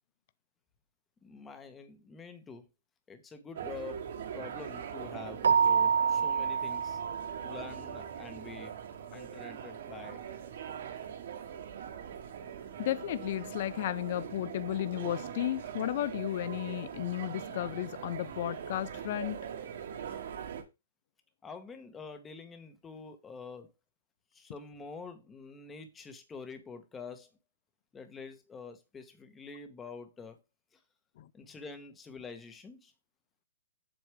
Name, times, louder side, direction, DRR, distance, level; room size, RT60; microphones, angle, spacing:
voice 1, 1.2-2.6 3.1-7.0 7.4-8.7 9.1-10.3 21.4-23.7 24.3-27.3 27.9-30.4 30.7-30.8 31.3-32.9, left 4 dB, 10° left, 1.2 m, -46 dB
sound 1, 3.5-20.6, right 8 dB, 55° right, 1.8 m, -42 dB
Keyboard (musical), 5.4-7.9, right 6 dB, 85° right, 0.3 m, -27 dB
voice 2, 12.8-19.5 31.2-31.3, left 13 dB, 40° left, 0.4 m, -34 dB
7.8 x 7.1 x 3.5 m
hypercardioid pair, 165°, 0 cm